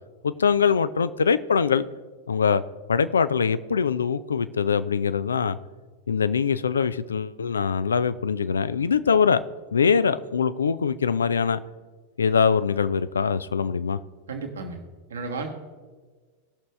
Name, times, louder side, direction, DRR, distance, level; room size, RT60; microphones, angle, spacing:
voice 1, 0.2-1.9 2.3-2.6 2.9-5.6 6.1-9.4 9.7-11.6 12.2-14.0, left 6 dB, 70° left, 14 dB, 0.4 m, -23 dB
voice 2, 14.3-14.8 15.1-15.5, right 3 dB, 65° right, 4 dB, 1.6 m, -33 dB
18.5 x 6.7 x 3.2 m, 1.4 s
figure-of-eight pair, 90°, 0 cm